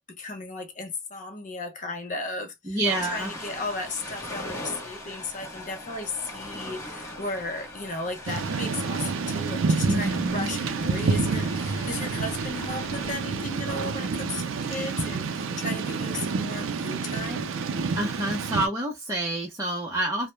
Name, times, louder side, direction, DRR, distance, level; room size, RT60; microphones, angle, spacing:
voice 1, 0.0-2.8 3.1-17.5, left 2 dB, 40° left, 0.6 m, -35 dB
voice 2, 2.7-3.3 9.8-10.5 18.0-20.3, right 1 dB, 15° right, 0.6 m, -28 dB
Ocean, 2.8-13.2, left 1 dB, 15° left, 0.9 m, -40 dB
Thunder / Rain, 8.3-18.7, right 4 dB, 80° right, 0.4 m, -28 dB
2.2 x 2.1 x 3.0 m
head